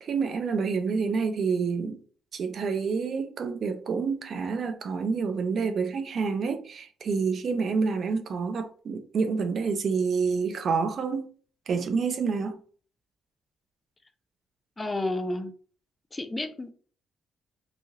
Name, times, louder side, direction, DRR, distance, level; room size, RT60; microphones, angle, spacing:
voice 1, 0.0-2.0 2.3-11.3 11.7-12.6, right 5 dB, 55° right, 0.4 m, -28 dB
voice 2, 14.8-15.5 16.1-16.7, left 2 dB, 20° left, 0.4 m, -31 dB
3.0 x 2.3 x 2.7 m
cardioid pair, 90°, 0 cm